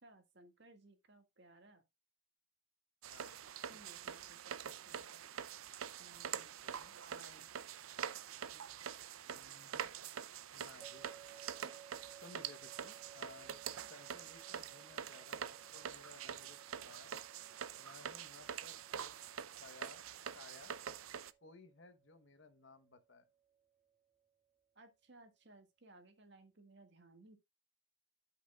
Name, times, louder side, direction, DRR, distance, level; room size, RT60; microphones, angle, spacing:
voice 1, 0.0-1.8 3.7-4.4 4.7-5.2 6.0-6.6 7.0-7.5 8.5-8.8 11.6-11.7 24.8-27.4, right 2 dB, 60° right, 1.9 m, -61 dB
sound 1, 3.0-21.3, right 8 dB, 90° right, 0.5 m, -46 dB
voice 2, 6.6-7.0 9.2-9.9 10.5-11.1 12.1-13.5 13.8-17.1 17.8-19.2 19.6-20.0 20.3-20.7 21.4-23.2, left 3 dB, 60° left, 1.1 m, -59 dB
sound 2, 10.8-23.9, right 8 dB, ahead, 2.6 m, -62 dB
12.5 x 5.8 x 2.4 m
head